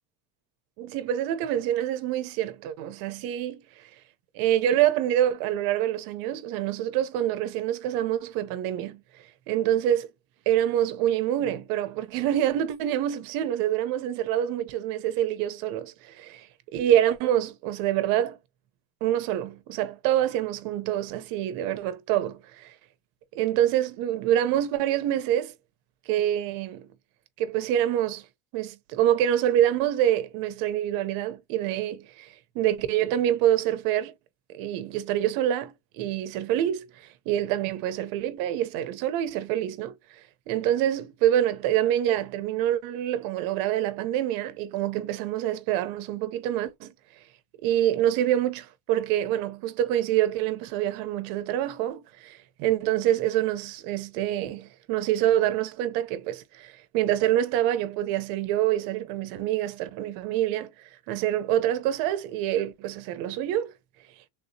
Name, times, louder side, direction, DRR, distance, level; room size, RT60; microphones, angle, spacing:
voice 1, 0.8-3.9 4.3-9.0 9.5-10.1 10.5-16.5 16.7-18.4 19.0-22.7 23.3-25.5 26.1-26.9 27.4-28.2 28.5-34.1 34.5-40.2 40.5-46.9 47.6-63.7, right 11 dB, 50° right, 0.6 m, -26 dB
3.5 x 2.7 x 2.6 m
cardioid pair, 170°, 44 cm